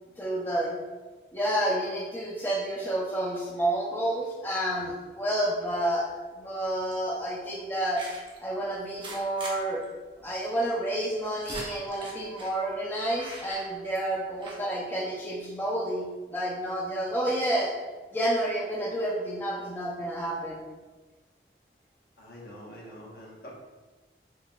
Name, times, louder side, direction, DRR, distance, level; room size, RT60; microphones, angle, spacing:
voice 1, 0.2-0.8 1.3-6.1 6.4-8.0 8.4-9.8 10.2-16.0 16.3-17.7 18.1-20.6, right 1 dB, 10° left, -5 dB, 0.5 m, -29 dB
sound 1, 5.8-6.2 6.9-7.1 7.9-8.4 8.8-9.6 9.8-9.9 10.2-10.3 11.0-12.6 13.1-14.1 14.4-14.6, right 2 dB, 30° right, 0.6 m, -42 dB
voice 2, 22.2-23.5, equal, 65° left, -4 dB, 1.1 m, -45 dB
5.7 x 3.0 x 2.3 m, 1.3 s
head